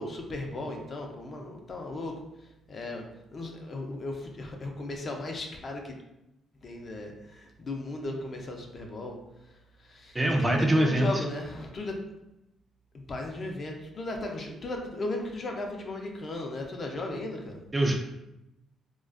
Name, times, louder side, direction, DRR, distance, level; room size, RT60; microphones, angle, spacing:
voice 1, 0.0-2.2 2.7-5.9 6.6-9.2 9.8-12.0 12.9-17.6, left 2 dB, 45° left, 2 dB, 0.4 m, -36 dB
voice 2, 10.1-11.2 17.7-18.0, right 1 dB, 20° right, 2 dB, 0.3 m, -24 dB
2.4 x 2.2 x 2.4 m, 0.90 s
cardioid pair, 90°, 0 cm